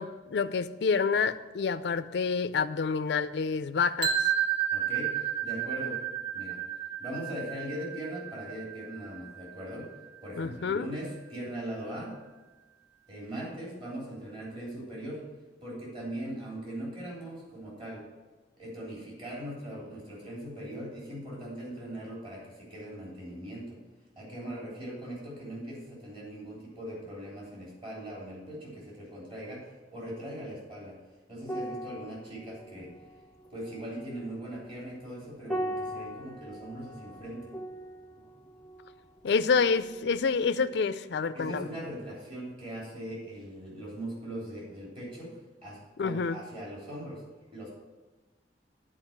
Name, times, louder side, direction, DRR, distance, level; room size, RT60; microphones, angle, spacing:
voice 1, 0.0-4.1 10.4-10.9 39.2-41.6 46.0-46.4, left 5 dB, 65° left, 12 dB, 0.4 m, -28 dB
sound 1, 4.0-9.9, right 9 dB, 75° right, 1.3 m, -32 dB
voice 2, 4.7-6.0 6.3-6.6 7.0-9.9 10.2-12.2 13.1-15.3 15.6-18.0 18.6-23.8 24.2-31.0 31.3-32.9 33.5-37.5 41.3-47.2 47.5-47.7, right 1 dB, 30° right, -5 dB, 3.4 m, -40 dB
sound 2, 31.4-40.2 40.4-40.7, equal, ahead, 0.5 m, -40 dB
9.0 x 5.0 x 7.3 m, 1.2 s
head